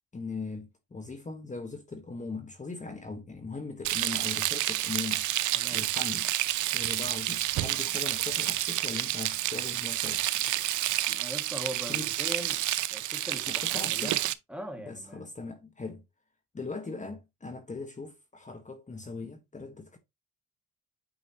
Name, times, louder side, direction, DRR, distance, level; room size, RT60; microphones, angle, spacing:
voice 1, 0.1-5.3 5.7-6.3 6.7-10.2 11.9-12.1 13.5-14.2 14.9-16.0 16.5-20.0, left 3 dB, 25° left, 1.6 m, -39 dB
Frying (food), 3.8-14.3, right 14 dB, 75° right, 0.7 m, -29 dB
voice 2, 11.1-12.6 12.9-14.2 14.5-15.2, equal, 5° right, 2.2 m, -40 dB
9.0 x 5.0 x 3.0 m
cardioid pair, 90°, 30 cm